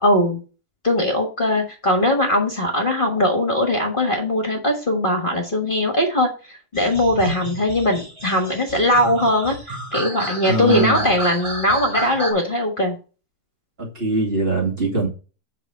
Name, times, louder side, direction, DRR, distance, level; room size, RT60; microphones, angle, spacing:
voice 1, 0.0-0.4 0.8-13.0, left 1 dB, 30° left, 1.6 m, -20 dB
sound 1, 6.7-12.3, right 1 dB, 15° right, 1.6 m, -31 dB
voice 2, 10.5-11.1 13.8-15.1, right 3 dB, 35° right, 2.4 m, -22 dB
8.1 x 5.4 x 4.5 m
omnidirectional pair, 1.8 m